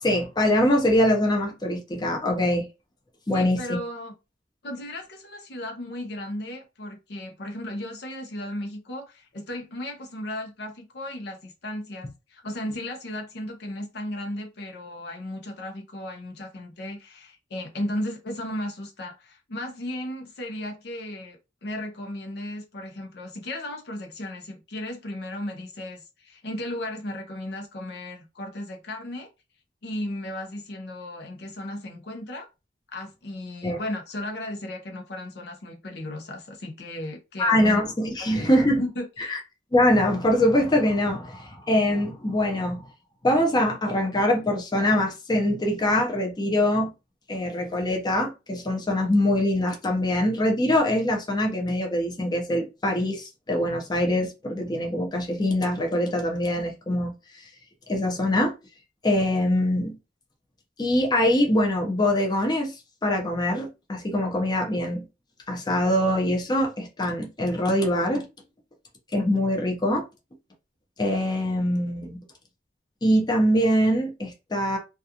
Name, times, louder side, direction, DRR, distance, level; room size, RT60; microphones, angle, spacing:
voice 1, 0.0-2.7 3.3-3.8 33.6-33.8 37.4-38.8 39.3-39.4 39.7-42.9 43.2-46.9 47.3-57.4 57.9-58.5 59.0-60.0 60.8-62.7 63.0-65.1 65.5-68.3 69.1-70.0 71.0-72.2 73.0-74.8, left 1 dB, 25° left, 0.6 m, -23 dB
voice 2, 3.3-4.1 4.6-29.3 29.8-32.5 32.9-37.8 38.3-39.4, left 1 dB, 70° left, 0.6 m, -35 dB
2.4 x 2.3 x 2.7 m
head